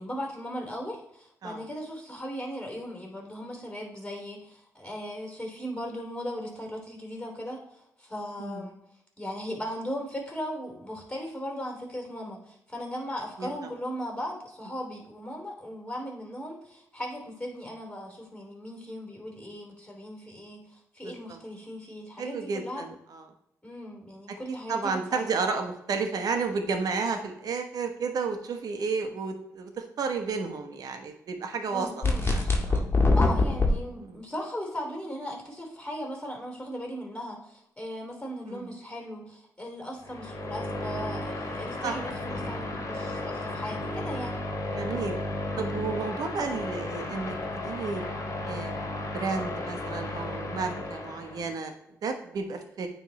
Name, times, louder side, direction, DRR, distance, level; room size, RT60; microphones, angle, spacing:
voice 1, 0.0-8.8 9.2-22.8 23.6-25.5 31.7-32.5 33.1-44.4, equal, 15° left, 1 dB, 2.9 m, -38 dB
voice 2, 8.4-8.7 13.4-13.5 21.0-21.4 22.2-23.3 24.7-32.8 34.0-34.2 38.5-38.7 41.8-42.0 42.3-42.4 42.8-42.9 44.7-45.1 45.6-48.0 48.5-48.7 49.1-51.7 52.0-52.9, right 4 dB, 70° right, 6 dB, 1.1 m, -32 dB
sound 1, 32.0-33.7, left 3 dB, 35° left, 1.7 m, -22 dB
sound 2, 40.0-51.5, left 2 dB, 50° left, 1.7 m, -34 dB
9.1 x 3.5 x 4.3 m, 0.77 s
cardioid pair, 60°, 7 cm